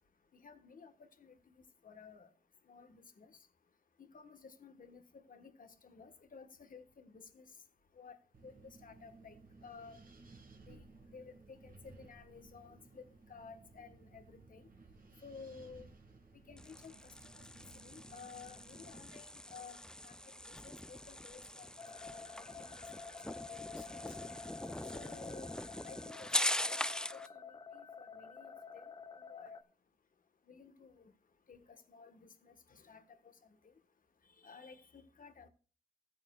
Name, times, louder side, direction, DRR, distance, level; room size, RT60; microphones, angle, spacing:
voice 1, 0.3-0.9 1.2-1.5 1.8-2.3 2.7-3.3 4.0-7.5 8.0-8.2 8.4-9.4 9.6-10.0 10.7-10.8 11.1-14.7 15.2-15.9 16.5-19.8 20.0-20.1 20.5-21.7 22.0-22.7 23.3-24.2 24.8-25.5 25.8-26.3 26.6-28.9 29.2-29.6 30.5-31.1 31.5-33.0 33.6-33.7 34.4-35.5, left 5 dB, 60° left, 1.3 m, -55 dB
Wind, 8.3-19.0, right 3 dB, 65° right, 1.8 m, -59 dB
sound 1, 16.6-27.3, left 1 dB, 5° left, 0.4 m, -41 dB
sound 2, 21.8-29.6, left 5 dB, 30° left, 0.9 m, -50 dB
15.0 x 8.9 x 2.3 m
cardioid pair, 60°, 16 cm